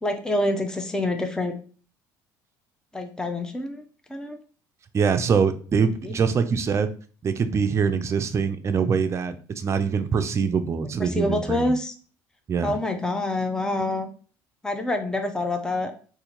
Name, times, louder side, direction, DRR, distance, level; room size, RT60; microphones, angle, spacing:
voice 1, 0.0-1.5 2.9-3.8 4.1-4.4 6.0-6.2 11.0-11.9 12.6-14.1 14.6-15.9, left 1 dB, 10° left, 5 dB, 0.6 m, -26 dB
voice 2, 4.9-6.9 7.2-11.7 12.5-12.7, right 6 dB, 35° right, 8 dB, 0.4 m, -24 dB
2.8 x 2.6 x 3.8 m, 0.40 s
supercardioid pair, 75°, 8 cm